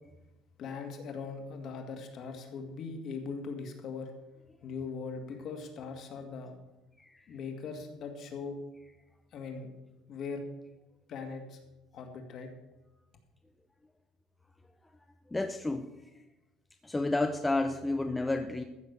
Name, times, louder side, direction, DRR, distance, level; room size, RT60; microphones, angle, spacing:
voice 1, 0.6-4.1 4.6-6.5 7.3-8.6 9.3-9.7 10.1-10.4 11.1-11.6 11.9-12.5, left 5 dB, 40° left, 5 dB, 2.0 m, -40 dB
voice 2, 15.3-15.9 16.8-18.6, left 2 dB, 10° left, 6 dB, 0.5 m, -31 dB
14.5 x 6.6 x 6.6 m, 1.0 s
cardioid pair, 170°, 0 cm